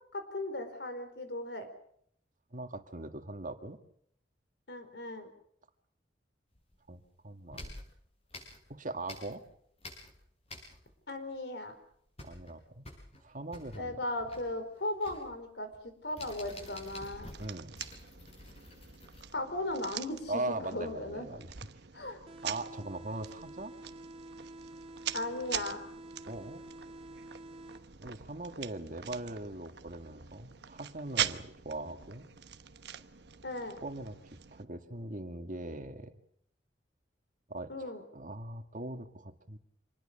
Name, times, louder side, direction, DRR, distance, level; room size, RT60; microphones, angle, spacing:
voice 1, 0.1-1.7 4.7-5.3 11.1-11.7 13.7-17.3 19.3-21.3 21.9-22.2 25.1-25.8 33.4-33.8 37.7-38.0, left 1 dB, 70° left, 9 dB, 4.6 m, -37 dB
voice 2, 2.5-3.8 6.9-7.7 8.7-9.4 12.2-12.9 13.2-14.0 17.4-17.7 20.3-21.5 22.4-23.7 26.3-26.6 28.0-32.3 33.8-36.1 37.5-39.6, right 2 dB, 50° right, 7 dB, 2.1 m, -40 dB
sound 1, 6.5-7.1 7.5-9.5 9.8-11.1 11.3-11.4 11.8-19.2, left 1 dB, 35° left, 6.9 m, -50 dB
sound 2, 16.2-34.6, right 9 dB, 65° right, 1.1 m, -43 dB
sound 3, 22.3-28.2, right 1 dB, 30° right, 1.8 m, -49 dB
26.5 x 20.5 x 6.8 m, 0.67 s
head